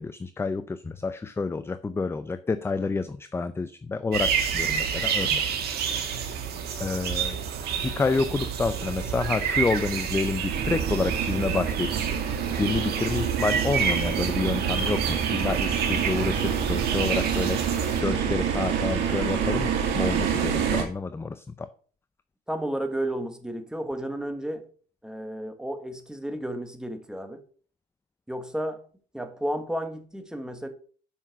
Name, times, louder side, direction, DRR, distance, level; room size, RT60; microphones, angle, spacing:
voice 1, 0.0-5.4 6.8-7.4 7.8-11.9 12.5-17.6 18.0-21.7, left 4 dB, 15° left, 12 dB, 0.5 m, -29 dB
sound 1, 4.1-18.0, right 7 dB, 70° right, 1.9 m, -29 dB
sound 2, 10.5-20.8, right 7 dB, 90° right, 2.0 m, -27 dB
voice 2, 22.5-24.7 25.0-27.4 28.3-28.8 29.1-30.7, right 1 dB, 5° right, 7 dB, 1.3 m, -32 dB
7.2 x 5.8 x 5.8 m, 0.43 s
cardioid pair, 110°, 17 cm